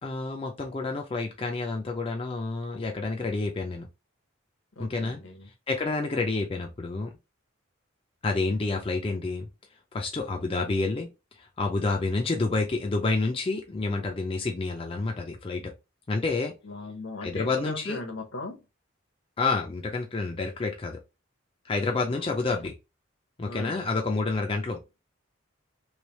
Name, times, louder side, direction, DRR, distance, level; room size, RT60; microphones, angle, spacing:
voice 1, 0.0-3.9 4.8-5.2 5.7-7.1 8.2-9.5 9.9-11.1 11.4-15.7 16.1-16.5 17.2-18.0 19.4-21.0 21.6-22.7 23.4-24.8, left 3 dB, 25° left, 0.4 m, -29 dB
voice 2, 4.8-5.5 16.6-18.6 21.8-22.7 23.5-23.9, left 2 dB, 70° left, 0.9 m, -39 dB
3.2 x 3.0 x 3.0 m
head